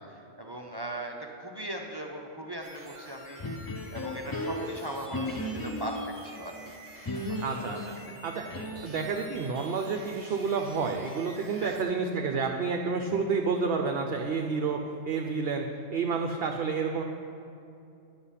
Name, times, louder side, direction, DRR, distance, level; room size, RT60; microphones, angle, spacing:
voice 1, 0.0-6.6 7.1-7.4 8.1-8.2 11.6-11.7, right 1 dB, 30° right, 1 dB, 0.4 m, -39 dB
sound 1, 2.6-11.8, right 1 dB, 15° right, 1.2 m, -49 dB
sound 2, 3.4-6.2 7.1-9.0, left 1 dB, 35° left, 0.3 m, -35 dB
voice 2, 7.4-8.0 8.2-14.8 15.1-15.6 15.9-17.0, right 5 dB, 60° right, 3 dB, 0.7 m, -30 dB
9.8 x 6.8 x 5.6 m, 2.7 s
omnidirectional pair, 1.3 m